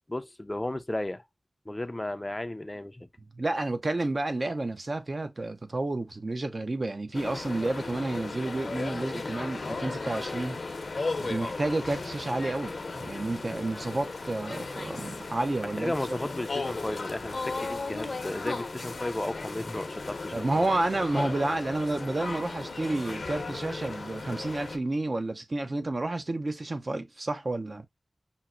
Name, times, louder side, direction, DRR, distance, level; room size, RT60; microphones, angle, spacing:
voice 1, 0.1-1.2 1.7-3.1 15.6-20.6, left 1 dB, 25° left, 0.4 m, -34 dB
voice 2, 3.3-10.6 11.2-16.2 20.3-27.9, right 2 dB, 50° right, 0.5 m, -30 dB
sound 1, 7.1-24.8, left 3 dB, 70° left, 0.6 m, -36 dB
5.5 x 2.1 x 2.3 m
cardioid pair, 40°, 0 cm